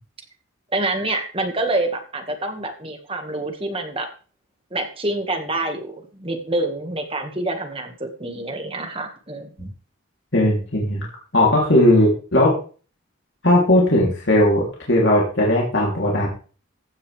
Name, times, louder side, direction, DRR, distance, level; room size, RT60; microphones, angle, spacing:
voice 1, 0.7-4.1 4.7-9.7, right 2 dB, 25° right, 5 dB, 1.7 m, -27 dB
voice 2, 10.3-11.0 11.3-12.5 13.4-16.3, left 1 dB, 60° left, -4 dB, 3.1 m, -17 dB
15.5 x 9.8 x 3.4 m, 0.39 s
head